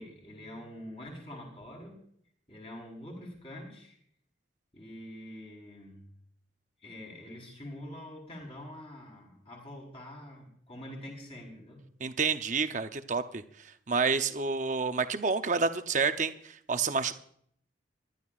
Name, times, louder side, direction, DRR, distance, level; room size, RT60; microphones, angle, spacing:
voice 1, 0.0-2.0 2.5-4.0 4.7-6.0 6.8-11.8, left 1 dB, 30° left, 0 dB, 4.2 m, -45 dB
voice 2, 12.0-13.4 13.9-17.1, right 4 dB, 40° right, 9 dB, 0.7 m, -29 dB
22.0 x 12.0 x 2.5 m, 0.64 s
head